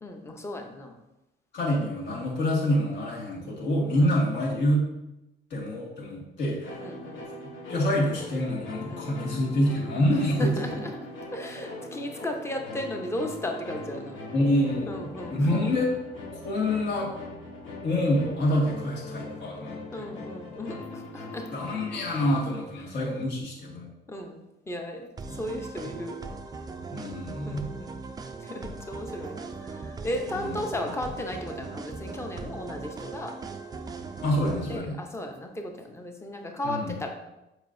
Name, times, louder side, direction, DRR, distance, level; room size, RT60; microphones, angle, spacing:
voice 1, 0.0-1.0 6.8-7.2 8.9-9.1 10.4-14.2 14.9-15.4 19.9-21.5 24.1-24.4 24.7-25.1 25.4-26.2 27.5-28.0 28.4-33.4 34.7-37.1, left 1 dB, 15° left, 3 dB, 0.7 m, -35 dB
voice 2, 1.5-4.8 5.5-6.8 7.7-10.7 14.3-16.0 16.3-17.1 17.8-20.1 21.5-23.9 26.9-27.6 30.3-30.6 34.2-35.0 36.6-36.9, left 1 dB, 65° left, -3 dB, 1.8 m, -26 dB
sound 1, 6.6-22.6, left 2 dB, 85° left, 1.5 m, -41 dB
sound 2, 25.2-34.8, right 4 dB, 20° right, 0.3 m, -39 dB
7.3 x 4.9 x 2.6 m, 0.94 s
cardioid pair, 165°, 20 cm